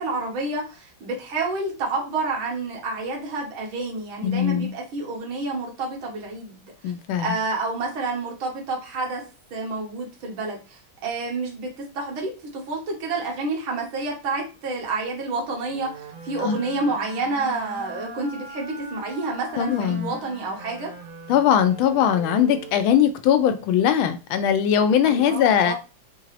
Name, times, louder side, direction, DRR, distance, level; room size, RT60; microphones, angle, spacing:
voice 1, 0.0-6.7 7.2-9.2 9.5-11.7 11.9-15.9 16.2-20.9 25.0-25.7, right 3 dB, 90° right, 2.0 m, -29 dB
voice 2, 4.2-4.7 6.8-7.3 16.4-16.6 19.6-20.1 21.3-25.7, left 9 dB, 85° left, 1.4 m, -20 dB
sound 1, 15.7-23.2, right 2 dB, 55° right, 1.0 m, -40 dB
4.4 x 2.5 x 3.2 m
omnidirectional pair, 2.2 m